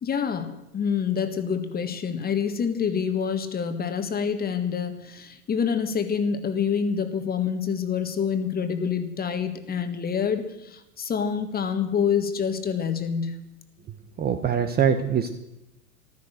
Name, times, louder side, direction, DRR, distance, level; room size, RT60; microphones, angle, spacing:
voice 1, 0.0-13.4, left 7 dB, 20° left, 8 dB, 1.6 m, -27 dB
voice 2, 14.2-15.3, right 7 dB, 20° right, 8 dB, 0.9 m, -23 dB
14.5 x 13.0 x 6.5 m, 0.90 s
hypercardioid pair, 100°, 46 cm